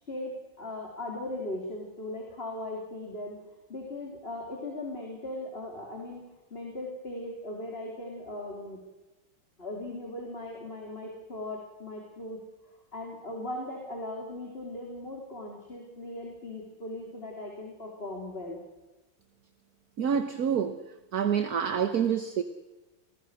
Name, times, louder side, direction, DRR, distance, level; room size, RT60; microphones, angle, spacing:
voice 1, 0.1-3.4 3.7-6.2 6.5-8.8 9.6-12.4 12.9-18.6, left 1 dB, 30° left, 3.6 m, -38 dB
voice 2, 20.0-20.8 21.1-22.4, right 8 dB, 55° right, 1.5 m, -27 dB
28.5 x 20.0 x 6.4 m
omnidirectional pair, 2.1 m